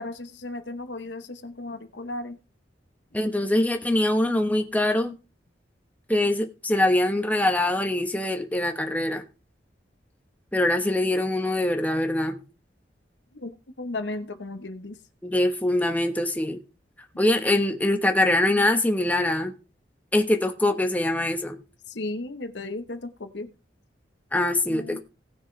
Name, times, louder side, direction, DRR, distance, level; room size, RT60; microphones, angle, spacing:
voice 1, 0.0-2.4 13.3-15.0 21.9-23.5 24.7-25.0, left 2 dB, 80° left, 1.0 m, -35 dB
voice 2, 3.1-5.1 6.1-9.2 10.5-12.4 15.2-16.6 17.2-19.5 20.1-21.6 24.3-25.0, left 1 dB, 10° left, 1.1 m, -23 dB
18.0 x 6.4 x 3.3 m
head